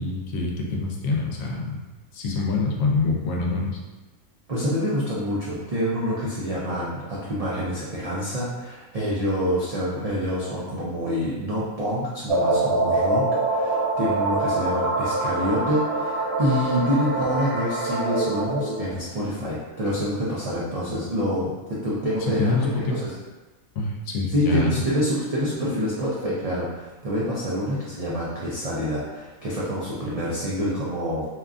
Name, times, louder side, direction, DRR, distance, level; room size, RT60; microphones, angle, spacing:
voice 1, 0.0-1.8 2.1-3.8 22.4-23.0 23.7-24.7, left 3 dB, 90° left, -1 dB, 1.0 m, -25 dB
voice 2, 4.5-23.1 24.3-31.3, equal, 75° right, -8 dB, 0.3 m, -27 dB
sound 1, 12.3-18.9, right 2 dB, 30° right, 0.8 m, -24 dB
2.9 x 2.3 x 2.4 m, 1.2 s
omnidirectional pair, 1.3 m